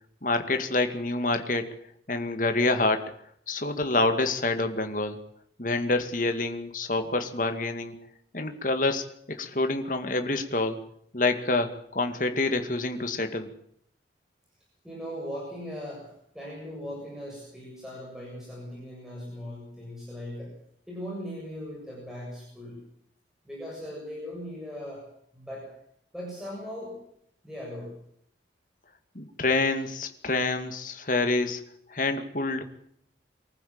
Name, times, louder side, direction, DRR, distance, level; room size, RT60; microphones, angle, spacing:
voice 1, 0.2-1.7 2.1-3.1 3.5-5.2 5.6-7.9 8.3-10.8 11.1-13.5 29.1-31.6 31.9-32.6, left 2 dB, 45° left, 7 dB, 2.3 m, -27 dB
voice 2, 14.8-20.5 20.9-22.8 23.4-25.0 25.3-25.7 26.1-26.9 27.4-27.9, equal, 5° right, -4 dB, 7.3 m, -39 dB
24.0 x 14.5 x 8.8 m, 0.67 s
head